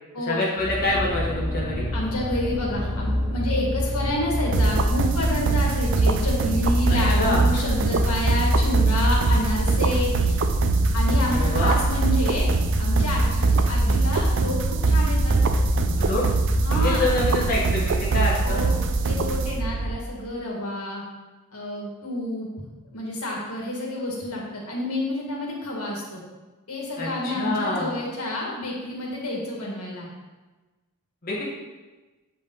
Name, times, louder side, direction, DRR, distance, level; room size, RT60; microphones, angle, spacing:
voice 1, 0.3-1.9 6.9-7.4 11.3-11.8 16.0-16.2 16.7-18.6 27.0-27.9 31.2-31.4, left 2 dB, 40° left, -5 dB, 1.2 m, -26 dB
sound 1, 0.6-16.8, left 1 dB, 5° right, 1.5 m, -26 dB
voice 2, 1.9-10.4 10.9-15.6 16.6-17.1 18.4-21.0 21.5-22.5 22.9-26.2 26.7-30.1, left 1 dB, 80° left, -2 dB, 1.9 m, -29 dB
sound 2, 4.5-20.0, right 4 dB, 60° right, 0.5 m, -23 dB
8.1 x 5.2 x 4.0 m, 1.2 s
head